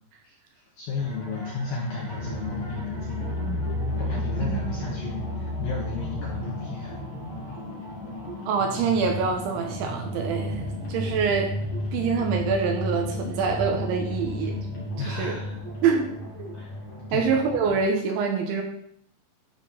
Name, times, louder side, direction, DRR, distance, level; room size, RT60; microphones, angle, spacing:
voice 1, 0.2-3.3 4.0-7.0 15.0-15.6 16.5-16.7 17.1-17.3, left 4 dB, 70° left, -3 dB, 2.3 m, -34 dB
sound 1, 1.0-17.8, left 1 dB, 40° left, 3.5 m, -34 dB
sound 2, 2.1-16.3, equal, 50° right, 3.2 m, -37 dB
voice 2, 8.5-10.6 10.9-11.5 11.9-14.6 15.1-15.4 15.8-16.5 17.1-18.6, right 5 dB, 70° right, 2 dB, 3.2 m, -25 dB
12.5 x 4.5 x 5.6 m, 0.69 s
omnidirectional pair, 6.0 m